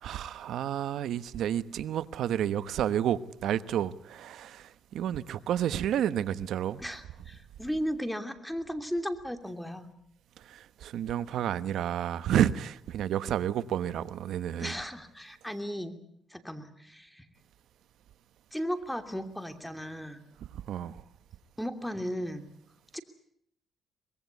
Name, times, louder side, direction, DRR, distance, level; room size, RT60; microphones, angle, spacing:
voice 1, 0.0-6.8 10.5-14.7 20.7-21.0, right 10 dB, 75° right, 1.1 m, -30 dB
voice 2, 6.8-9.9 14.6-15.9 16.3-17.3 18.5-20.2 21.6-22.4 22.9-23.0, equal, 5° left, 2.9 m, -35 dB
24.0 x 21.5 x 8.3 m
cardioid pair, 90°, 0 cm